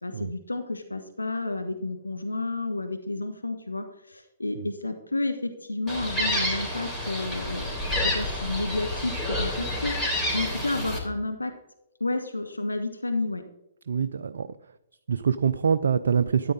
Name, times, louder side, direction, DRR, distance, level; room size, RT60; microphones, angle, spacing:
voice 1, 0.0-7.7 8.0-11.5 12.0-13.4, left 2 dB, 85° left, 7 dB, 1.1 m, -31 dB
Gull seagull, 5.9-11.0, left 1 dB, 10° left, 3.7 m, -29 dB
voice 2, 13.9-14.5 15.1-16.5, right 7 dB, 65° right, 10 dB, 0.5 m, -24 dB
13.0 x 9.5 x 4.0 m, 0.87 s
figure-of-eight pair, 120°, 0 cm